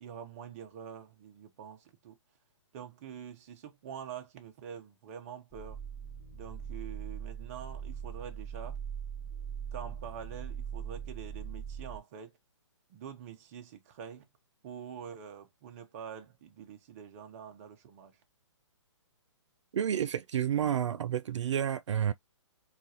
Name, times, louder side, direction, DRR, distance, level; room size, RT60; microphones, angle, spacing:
voice 1, 0.0-2.2 2.7-5.8 6.3-8.8 9.7-12.3 12.9-14.2 14.6-18.2, right 8 dB, 30° right, 0.7 m, -46 dB
sound 1, 5.5-12.0, right 7 dB, 5° left, 0.3 m, -41 dB
voice 2, 19.7-22.1, right 9 dB, 70° right, 0.4 m, -30 dB
3.8 x 2.4 x 2.7 m
hypercardioid pair, 160°, 16 cm